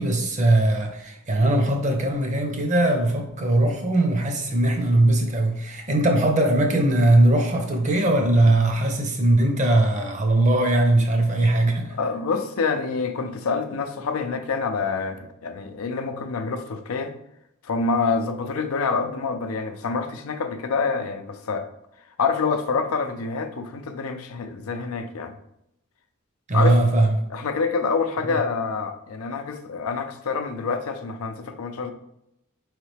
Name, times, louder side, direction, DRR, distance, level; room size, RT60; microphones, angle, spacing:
voice 1, 0.0-11.9 26.5-27.1 28.2-28.3, right 1 dB, 35° right, 0.8 m, -20 dB
voice 2, 12.0-17.1 17.6-21.7 22.2-25.3 26.5-26.8 27.3-31.9, left 4 dB, 85° left, 0.5 m, -27 dB
4.6 x 3.2 x 3.3 m
head